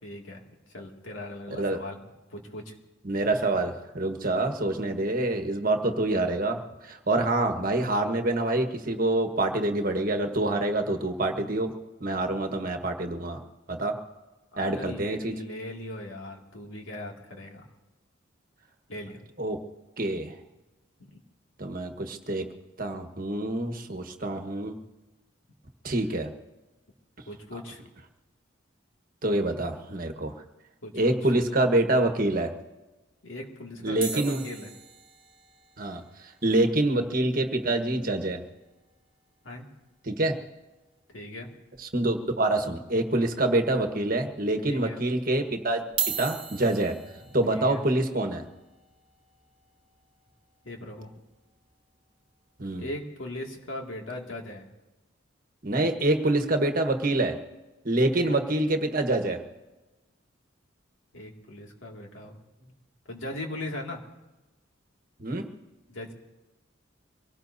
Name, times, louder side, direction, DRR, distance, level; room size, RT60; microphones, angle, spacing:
voice 1, 0.0-0.4 0.7-2.0 2.3-2.7 7.6-7.7 14.5-17.7 18.9-19.2 21.1-21.2 27.3-27.9 30.8-31.2 33.2-34.7 39.4-39.7 41.1-41.5 44.7-45.0 47.5-47.8 50.6-51.1 52.8-54.7 58.1-58.3 61.1-62.7 63.1-64.0 65.9-66.1, left 1 dB, 85° left, 1 dB, 2.4 m, -39 dB
voice 2, 1.5-1.8 3.0-13.4 13.7-13.9 14.6-15.3 19.4-19.6 20.0-20.3 21.6-22.4 22.8-24.8 25.8-26.3 27.5-27.6 29.2-30.3 30.9-32.5 33.8-34.4 35.8-36.0 36.4-38.4 40.0-40.3 41.8-45.8 46.2-47.0 47.3-48.4 52.6-52.8 55.6-57.4 57.8-59.4 65.2-65.5, right 2 dB, 45° right, 4 dB, 1.4 m, -26 dB
sound 1, 34.0-38.3 38.6-38.7 38.9-39.1 39.5-39.6 41.0-41.1 41.7-42.3 42.8-42.9 43.7-43.8 45.8-51.9 52.5-52.7, right 7 dB, 25° right, 1.3 m, -39 dB
25.0 x 18.0 x 2.7 m, 1.1 s
head